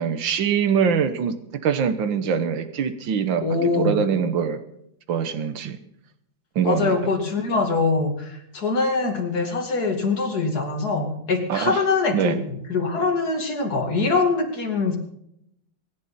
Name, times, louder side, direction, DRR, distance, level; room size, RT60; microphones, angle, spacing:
voice 1, 0.0-1.4 1.6-3.4 3.8-4.6 5.1-5.8 6.6-7.1 11.5-11.8 12.1-12.4, right 7 dB, 80° right, 10 dB, 1.9 m, -23 dB
voice 2, 3.4-4.0 6.6-15.0, left 4 dB, 55° left, 2 dB, 3.0 m, -23 dB
24.0 x 10.5 x 4.3 m, 0.76 s
omnidirectional pair, 2.1 m